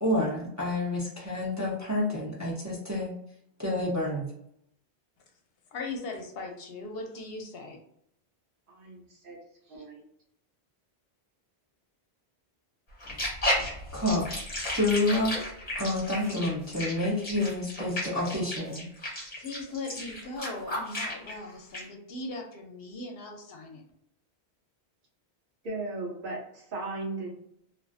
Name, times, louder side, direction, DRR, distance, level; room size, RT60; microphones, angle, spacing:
voice 1, 0.0-3.1 3.6-4.3 13.9-14.3 14.7-15.4 15.8-18.8, left 1 dB, 20° right, -6 dB, 0.5 m, -28 dB
voice 2, 5.7-7.8 19.4-23.8, left 2 dB, 70° left, 2 dB, 0.8 m, -39 dB
voice 3, 8.7-9.4 9.7-10.0 25.6-27.3, right 2 dB, 60° right, -1 dB, 0.8 m, -37 dB
sound 1, 13.0-21.3 21.7-21.8, left 1 dB, 35° left, 1.0 m, -33 dB
2.4 x 2.3 x 2.3 m, 0.72 s
omnidirectional pair, 1.1 m